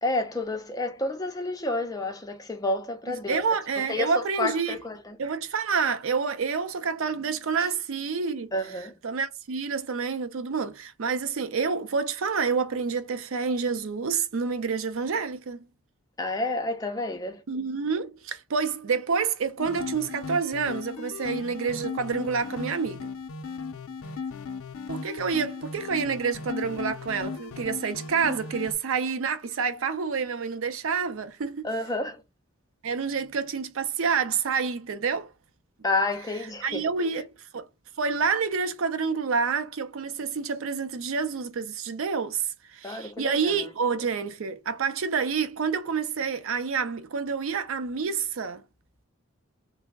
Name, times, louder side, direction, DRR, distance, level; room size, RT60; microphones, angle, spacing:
voice 1, 0.0-3.4 3.9-5.2 8.5-8.9 16.2-17.4 31.6-32.2 35.8-36.9 42.8-43.5, left 2 dB, 15° left, 0.4 m, -30 dB
voice 2, 3.1-4.8 5.2-8.5 9.0-15.7 17.5-23.1 24.9-31.7 32.8-35.3 36.6-37.2 37.5-37.7 38.0-48.6, right 5 dB, 75° right, 0.5 m, -28 dB
sound 1, 19.6-28.7, left 5 dB, 80° left, 0.4 m, -37 dB
3.3 x 2.0 x 3.4 m
head